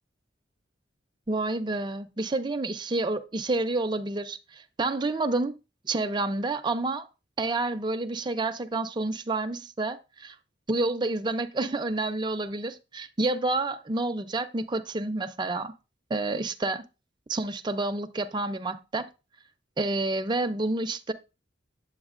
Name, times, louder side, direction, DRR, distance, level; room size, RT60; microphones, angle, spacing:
voice 1, 1.3-5.6 5.8-7.1 7.4-10.4 10.7-15.7 16.1-16.8 17.3-19.1 19.8-21.1, right 2 dB, 25° right, 0.5 m, -29 dB
7.9 x 7.9 x 2.5 m
head